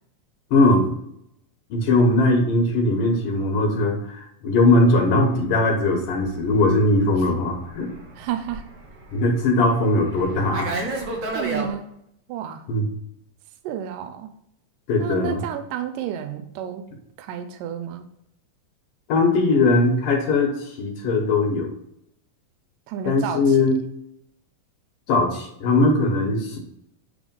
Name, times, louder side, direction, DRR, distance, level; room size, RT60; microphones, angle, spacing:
voice 1, 0.5-0.9 1.7-7.9 9.1-10.7 12.7-12.9 14.9-15.4 19.1-21.7 23.1-23.7 25.1-26.6, left 2 dB, 70° left, 1 dB, 2.7 m, -20 dB
Fixed-wing aircraft airplane, 5.2-11.7, right 2 dB, 55° right, 1.9 m, -33 dB
voice 2, 8.2-8.6 11.3-11.9 12.3-12.7 13.6-14.3 15.0-16.8 17.2-18.1 22.9-23.6, right 9 dB, 80° right, 7 dB, 2.1 m, -31 dB
8.7 x 3.4 x 5.2 m, 0.76 s
omnidirectional pair, 4.0 m